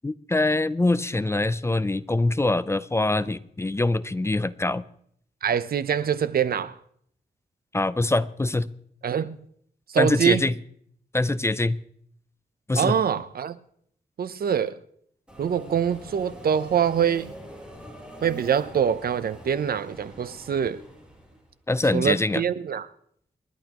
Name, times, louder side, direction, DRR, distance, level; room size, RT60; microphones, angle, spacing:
voice 1, 0.0-4.8 7.7-8.7 10.0-10.5 11.1-11.8 12.7-13.0 21.7-22.4, left 2 dB, 15° left, 0.5 m, -24 dB
voice 2, 5.4-6.7 9.0-9.4 9.9-10.5 12.7-13.6 14.2-14.8 15.4-17.3 18.2-20.8 21.9-22.9, right 8 dB, 75° right, 0.7 m, -24 dB
Subway metro underground, 15.3-21.5, equal, 5° right, 3.8 m, -44 dB
29.0 x 11.5 x 3.0 m
wide cardioid pair, 115°, 16 cm